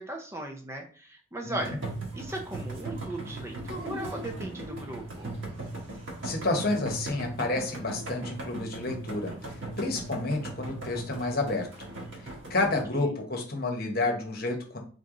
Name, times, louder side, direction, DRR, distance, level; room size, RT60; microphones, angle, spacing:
voice 1, 0.0-1.8 2.1-5.3, right 1 dB, 15° right, 3 dB, 0.5 m, -37 dB
voice 2, 1.4-1.8 6.2-11.7 12.2-14.8, left 2 dB, 50° left, 2 dB, 1.1 m, -30 dB
sound 1, 1.6-12.8, right 2 dB, 85° right, 1.5 m, -38 dB
3.8 x 3.4 x 3.8 m, 0.41 s
head